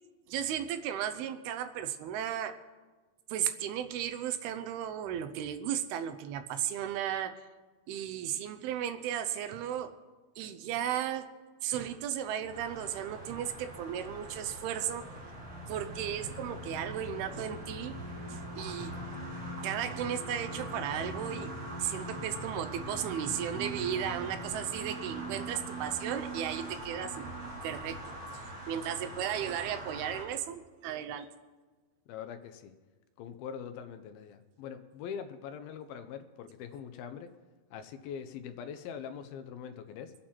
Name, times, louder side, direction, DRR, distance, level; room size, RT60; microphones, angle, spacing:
voice 1, 0.3-2.6 3.3-7.4 7.9-10.0 10.4-11.4 11.6-15.1 15.7-18.0 18.3-19.0 19.6-28.1 28.7-31.3, right 10 dB, 80° right, 9 dB, 2.7 m, -35 dB
sound 1, 12.5-30.2, right 1 dB, 40° right, 6.8 m, -44 dB
sound 2, 13.8-27.3, left 1 dB, 20° left, 4.8 m, -45 dB
voice 2, 32.1-32.7 33.2-37.3 37.7-40.1, left 7 dB, 75° left, 9 dB, 2.4 m, -43 dB
24.0 x 8.7 x 4.3 m, 1.3 s
omnidirectional pair, 4.5 m